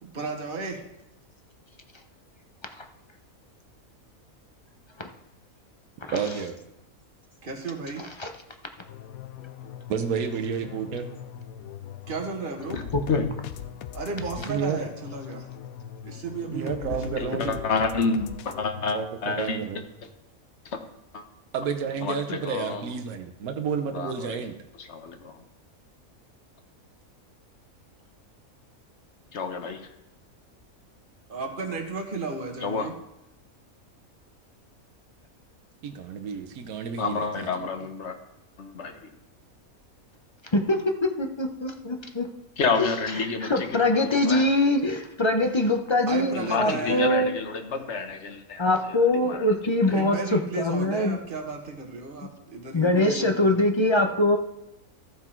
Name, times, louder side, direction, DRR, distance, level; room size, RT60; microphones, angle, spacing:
voice 1, 0.0-0.8 7.4-8.0 12.1-12.8 13.9-15.5 16.0-17.7 31.3-32.9 46.1-47.1 49.9-53.7, right 4 dB, 40° right, 1 dB, 1.6 m, -34 dB
voice 2, 6.1-6.6 9.9-11.1 14.5-14.8 16.5-17.6 18.9-19.9 21.5-24.6 35.8-37.5, right 6 dB, 80° right, 6 dB, 1.3 m, -30 dB
sound 1, 8.8-18.9, left 10 dB, 80° left, 1.0 m, -40 dB
voice 3, 17.2-19.6 20.7-20.8 21.1-21.2 22.0-22.9 23.9-24.4 24.8-25.4 29.3-29.8 32.6-32.9 37.0-38.2 38.6-38.9 42.6-44.5 46.3-50.1, left 4 dB, 55° left, 6 dB, 1.3 m, -29 dB
voice 4, 41.2-42.3 43.2-47.4 48.6-51.2 52.7-54.4, left 1 dB, 30° left, 5 dB, 0.5 m, -23 dB
14.0 x 5.9 x 4.5 m, 0.87 s
omnidirectional pair, 1.5 m